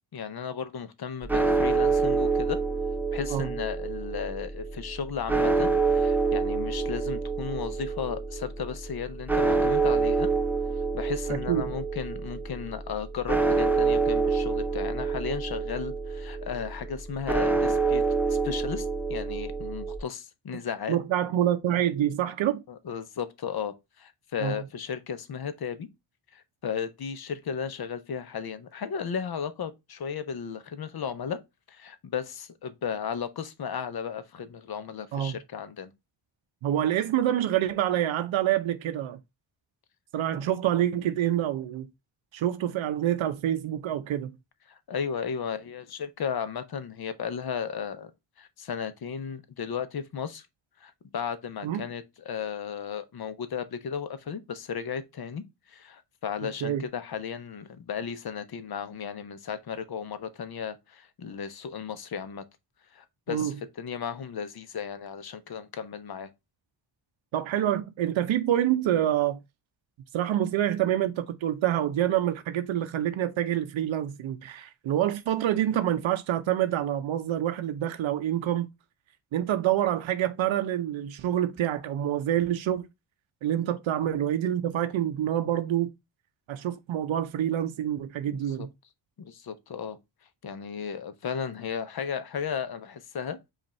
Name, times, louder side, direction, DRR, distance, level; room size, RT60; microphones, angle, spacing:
voice 1, 0.1-2.6 3.1-10.3 10.9-18.0 18.3-21.0 22.7-25.9 26.3-31.4 31.7-35.9 40.3-40.4 44.7-48.1 48.4-50.5 50.8-55.4 55.7-62.4 62.9-66.3 88.3-88.7 89.2-90.0 90.4-93.4, left 7 dB, 55° left, 0.7 m, -35 dB
sound 1, 1.2-20.0, right 4 dB, 5° right, 0.4 m, -27 dB
voice 2, 11.3-11.7 20.9-22.6 24.4-24.6 35.1-35.4 36.6-39.2 40.1-41.9 42.3-44.4 51.6-51.8 56.6-56.8 63.3-63.5 67.3-69.4 70.1-78.7 79.3-82.9 83.4-85.9 86.5-88.7, right 11 dB, 85° right, 0.6 m, -27 dB
5.2 x 2.5 x 4.1 m
wide cardioid pair, 130°, 45 cm